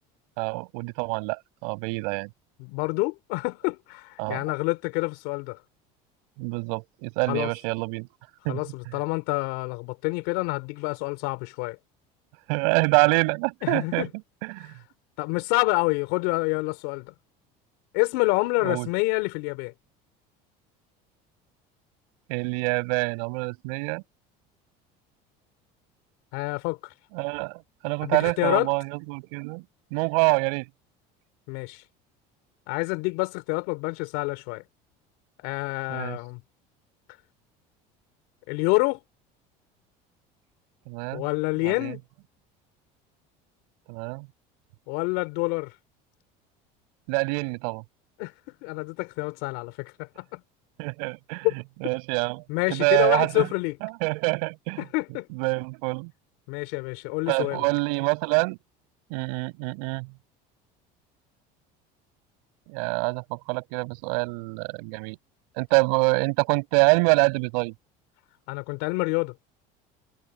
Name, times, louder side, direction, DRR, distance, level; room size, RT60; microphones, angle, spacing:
voice 1, 0.4-2.3 4.2-4.4 6.4-8.1 8.4-8.6 12.5-14.1 14.4-14.7 18.6-18.9 22.3-24.0 27.1-29.6 29.9-30.7 35.9-36.2 40.9-41.3 41.6-41.9 43.9-44.3 47.1-47.8 50.8-51.5 51.8-52.4 52.7-53.5 53.8-54.8 55.3-56.1 57.3-58.6 59.1-60.1 62.7-65.2 65.6-67.7, right 33 dB, 85° right, 7.9 m, -26 dB
voice 2, 2.6-5.6 7.3-7.5 8.5-11.8 13.6-14.1 15.2-17.1 17.9-19.7 26.3-26.9 28.0-28.7 31.5-31.8 32.7-34.6 35.4-36.4 38.5-39.0 41.1-42.0 44.9-45.7 48.2-48.3 48.6-50.4 51.4-51.5 52.5-53.8 54.8-55.3 56.5-57.6 68.5-69.3, left 27 dB, 75° left, 5.5 m, -27 dB
cardioid pair, 170°, 18 cm